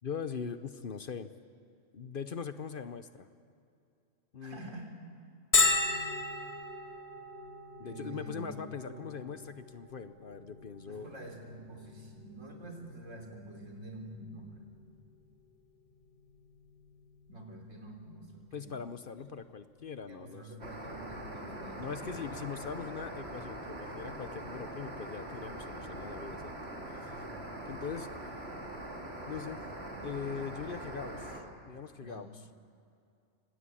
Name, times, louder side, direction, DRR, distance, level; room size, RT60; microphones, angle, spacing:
voice 1, 0.0-1.3 1.9-3.3 4.3-4.6 7.8-11.1 18.5-20.5 21.8-26.5 26.9-27.2 27.7-28.1 29.3-29.6 30.0-32.5, left 6 dB, 50° left, 11 dB, 0.9 m, -41 dB
voice 2, 4.4-5.0 7.8-8.5 8.9-9.1 10.8-14.7 17.3-18.8 20.1-22.2 27.0-27.5 32.0-32.3, right 1 dB, 80° right, 2 dB, 3.8 m, -47 dB
Bell, 5.5-21.0, left 3 dB, 25° left, 1.7 m, -37 dB
sound 1, 20.6-31.4, right 1 dB, 55° right, 3.2 m, -42 dB
25.0 x 18.5 x 8.5 m, 2.5 s
omnidirectional pair, 1.3 m